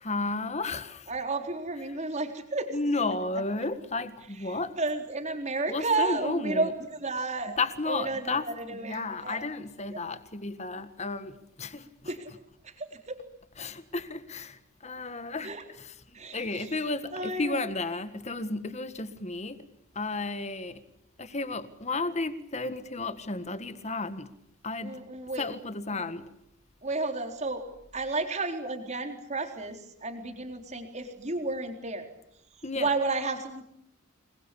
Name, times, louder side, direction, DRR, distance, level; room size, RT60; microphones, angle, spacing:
voice 1, 0.0-1.1 2.7-4.7 5.7-6.7 7.6-8.5 8.8-11.9 13.6-15.9 16.3-19.6 20.0-20.8 21.2-24.3 24.6-25.0 25.4-26.3 32.6-32.9, left 3 dB, 30° left, 1.7 m, -33 dB
voice 2, 1.1-2.7 4.5-7.6 7.9-9.5 9.9-10.0 12.1-12.3 12.6-13.2 15.4-15.6 16.1-16.8 17.1-17.7 24.8-25.5 25.9-26.0 26.8-32.1 32.7-33.6, right 3 dB, 35° right, 3.9 m, -32 dB
28.5 x 22.0 x 8.5 m
head